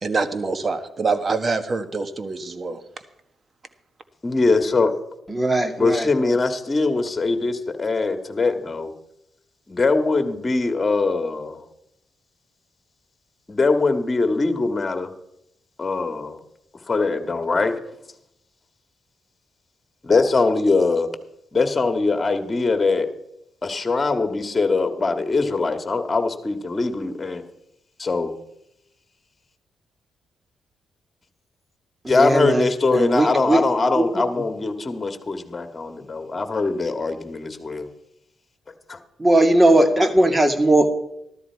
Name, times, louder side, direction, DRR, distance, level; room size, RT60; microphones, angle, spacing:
voice 1, 0.0-2.8, right 4 dB, 45° right, 9 dB, 1.5 m, -25 dB
voice 2, 4.2-4.9 5.8-8.9 9.7-11.6 13.5-15.1 15.8-16.4 16.9-17.8 20.0-21.1 21.5-23.1 23.6-27.4 28.0-28.3 32.1-37.9 38.9-39.0, left 3 dB, 30° left, 7 dB, 1.9 m, -22 dB
voice 3, 5.3-6.3 32.0-33.6 34.0-34.2 39.2-40.9, right 1 dB, 20° right, 7 dB, 2.1 m, -19 dB
13.5 x 13.0 x 4.7 m, 0.79 s
supercardioid pair, 65°, 0 cm